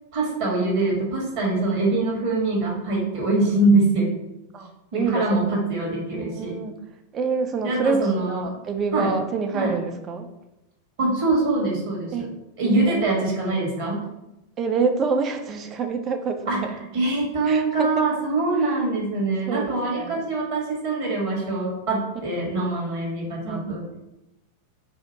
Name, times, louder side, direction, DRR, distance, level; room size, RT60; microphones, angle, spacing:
voice 1, 0.1-4.1 4.9-6.6 7.6-8.5 8.9-9.1 9.5-9.7 11.0-12.3 12.6-14.0 16.5-16.6 16.9-24.0, right 2 dB, 50° right, -3 dB, 1.2 m, -23 dB
voice 2, 4.5-5.4 6.1-6.7 7.1-10.3 12.1-12.3 12.6-13.1 14.6-16.7 17.5-17.9 19.5-20.2 22.2-22.3 23.4-23.8, right 5 dB, 30° right, 6 dB, 0.4 m, -27 dB
2.7 x 2.4 x 4.1 m, 0.93 s
figure-of-eight pair, 90°, 0 cm